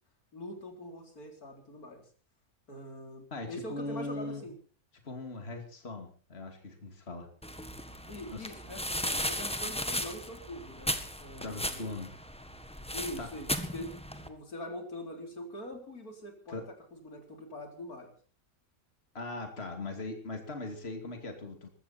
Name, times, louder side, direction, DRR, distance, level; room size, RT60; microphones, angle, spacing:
voice 1, 0.3-2.1 2.7-4.6 8.1-10.9 11.2-11.9 12.9-16.6 16.9-18.1, left 1 dB, 80° left, 4 dB, 4.4 m, -43 dB
voice 2, 3.3-4.4 5.0-7.3 8.3-8.5 11.4-12.1 13.2-13.3 16.5-16.7 19.1-21.7, left 2 dB, 45° left, 4 dB, 2.9 m, -40 dB
sound 1, 7.4-14.3, equal, 5° left, 1.5 m, -36 dB
21.5 x 15.0 x 4.4 m, 0.40 s
omnidirectional pair, 1.5 m